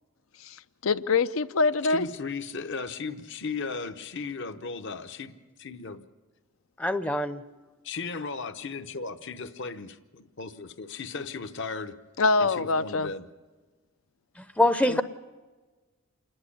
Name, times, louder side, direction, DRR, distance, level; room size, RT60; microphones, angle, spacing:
voice 1, 0.8-2.1 12.2-13.1 14.9-15.0, left 3 dB, 75° left, 14 dB, 0.6 m, -24 dB
voice 2, 1.8-5.3 5.6-6.0 7.8-11.9 12.4-13.3, left 4 dB, 60° left, 8 dB, 0.9 m, -36 dB
voice 3, 6.8-7.4 14.4-15.0, left 1 dB, 5° left, 11 dB, 0.6 m, -24 dB
28.0 x 11.0 x 9.9 m, 1.3 s
head